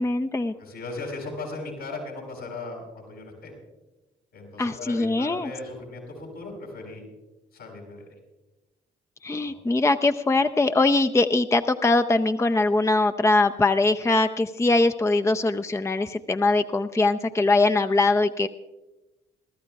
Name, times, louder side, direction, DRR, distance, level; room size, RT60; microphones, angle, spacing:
voice 1, 0.0-0.5 4.6-5.5 9.2-18.5, left 2 dB, 15° left, 9 dB, 0.5 m, -22 dB
voice 2, 0.6-3.5 4.3-7.0 7.5-8.1 9.4-9.7, left 2 dB, 80° left, -2 dB, 6.4 m, -37 dB
27.0 x 13.5 x 2.3 m, 1.1 s
hypercardioid pair, 50°, 21 cm